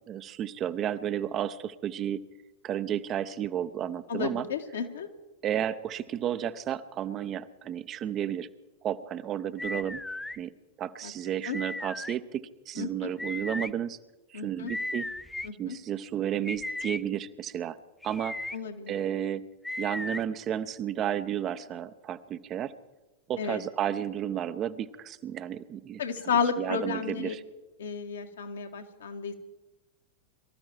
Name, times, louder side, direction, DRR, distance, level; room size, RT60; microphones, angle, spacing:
voice 1, 0.1-2.2 2.6-4.5 5.4-8.5 8.8-10.0 10.4-10.5 10.8-14.0 14.3-15.1 15.6-17.8 18.0-18.4 18.9-19.4 19.8-22.7 23.3-27.4, right 10 dB, 30° right, 12 dB, 0.8 m, -32 dB
voice 2, 4.1-5.1 11.0-11.1 11.5-11.6 12.8-13.1 14.3-14.7 15.4-15.8 18.5-18.9 23.4-23.6 26.0-27.4 27.8-29.3, left 6 dB, 65° left, 5 dB, 1.8 m, -32 dB
sound 1, 9.6-10.4 11.5-12.2 13.2-13.7 14.7-15.5 16.4-17.0 18.0-18.6 19.6-20.2, left 2 dB, 5° left, 0.4 m, -35 dB
23.5 x 13.5 x 4.6 m, 1.0 s
figure-of-eight pair, 90°, 0 cm